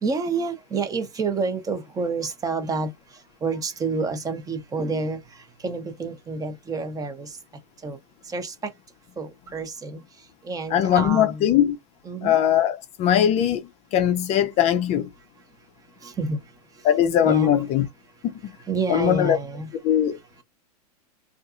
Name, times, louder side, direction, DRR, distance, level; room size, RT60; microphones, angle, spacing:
voice 1, 0.0-2.9 3.4-5.2 5.6-7.3 7.8-8.0 8.3-8.7 9.2-10.0 10.4-11.4 12.0-12.4 16.0-16.4 17.2-17.6 18.7-19.7, right 4 dB, 20° right, 0.7 m, -28 dB
voice 2, 10.7-11.8 12.2-15.1 16.8-17.9 18.2-18.4 18.9-19.4 19.8-20.2, left 10 dB, 35° left, 0.4 m, -20 dB
2.6 x 2.4 x 2.4 m
hypercardioid pair, 115°, 20 cm